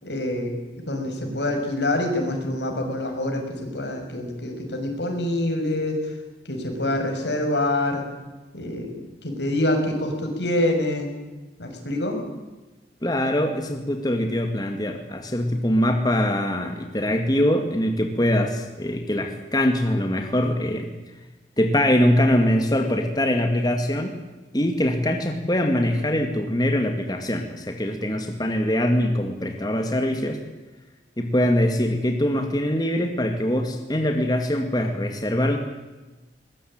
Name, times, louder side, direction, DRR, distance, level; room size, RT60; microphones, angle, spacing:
voice 1, 0.0-6.0 6.5-8.0 8.5-11.1 11.6-12.2, left 1 dB, 85° left, 3 dB, 6.3 m, -26 dB
voice 2, 13.0-20.9 21.6-24.2 24.5-30.4 31.2-35.6, left 1 dB, 25° left, 5 dB, 2.1 m, -23 dB
22.0 x 20.0 x 9.0 m, 1.2 s
head